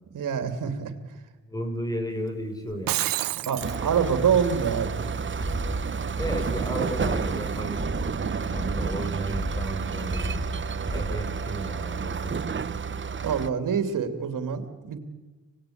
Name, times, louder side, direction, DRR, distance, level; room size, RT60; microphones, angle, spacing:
voice 1, 0.1-0.9 3.5-5.1 11.1-11.2 13.2-15.0, right 7 dB, 70° right, 8 dB, 2.9 m, -26 dB
voice 2, 1.5-3.1 6.2-10.4 10.9-12.7, right 1 dB, 10° left, 5 dB, 5.7 m, -34 dB
Shatter, 2.7-3.8, right 15 dB, 90° right, 0.7 m, -28 dB
sound 1, 3.6-13.5, right 5 dB, 35° right, 1.0 m, -31 dB
sound 2, 5.4-11.5, right 1 dB, 10° right, 1.6 m, -33 dB
25.5 x 19.5 x 8.7 m, 1.2 s
cardioid pair, 70°, 33 cm